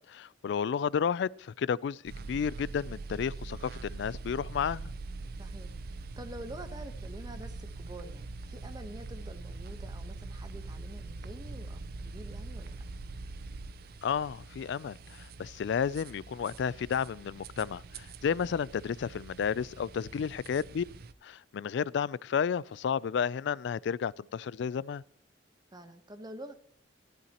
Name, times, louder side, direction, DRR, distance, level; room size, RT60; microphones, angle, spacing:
voice 1, 0.1-4.9 14.0-20.8 21.2-25.0, left 7 dB, 65° left, 0.3 m, -32 dB
sound 1, 2.1-21.1, right 3 dB, 55° right, 0.5 m, -43 dB
voice 2, 5.4-12.8 20.1-20.4 25.7-26.5, right 1 dB, 20° right, 1.0 m, -47 dB
13.0 x 12.0 x 2.9 m
head